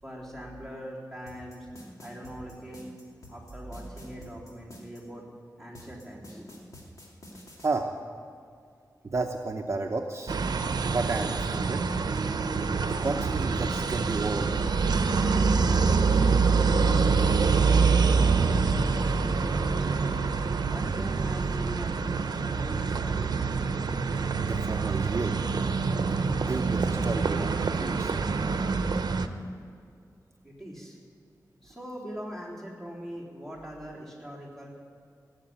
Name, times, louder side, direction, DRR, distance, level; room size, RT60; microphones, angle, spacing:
voice 1, 0.0-1.7 2.0-2.9 3.3-5.2 5.6-6.5 16.8-17.2 18.3-20.0 20.6-22.0 22.4-23.4 30.4-31.0 31.6-34.7, equal, 5° left, -5 dB, 3.7 m, -42 dB
sound 1, 1.3-5.0 5.7-7.7, left 1 dB, 55° left, 2.7 m, -48 dB
voice 2, 7.6-7.9 9.0-10.4 10.8-11.8 12.8-14.8 24.4-25.4 26.5-28.1, right 3 dB, 40° right, 3 dB, 0.8 m, -32 dB
street with pedestrians and medium traffic, 10.3-29.3, right 4 dB, 75° right, 0.7 m, -25 dB
17.5 x 7.6 x 8.9 m, 2.3 s
wide cardioid pair, 125°, 7 cm